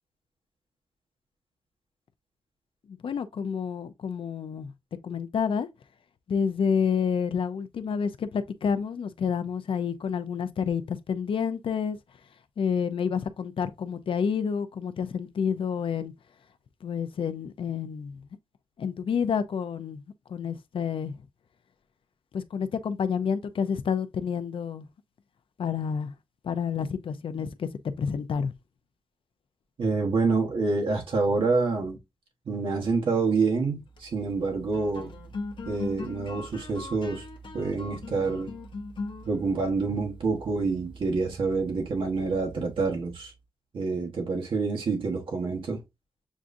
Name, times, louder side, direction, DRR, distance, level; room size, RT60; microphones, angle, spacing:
voice 1, 2.9-4.7 5.0-5.7 6.3-12.0 12.6-16.1 16.8-18.2 18.8-20.0 20.3-21.1 22.3-24.9 25.6-26.1 26.4-27.7 28.0-28.5, left 6 dB, 85° left, 0.5 m, -29 dB
voice 2, 29.8-32.0 32.5-35.1 35.7-37.2 37.5-38.5 39.2-43.3 43.7-45.8, right 4 dB, 80° right, 1.1 m, -27 dB
sound 1, 33.7-43.3, left 2 dB, 65° left, 0.9 m, -41 dB
7.1 x 2.5 x 2.6 m
wide cardioid pair, 145°, 9 cm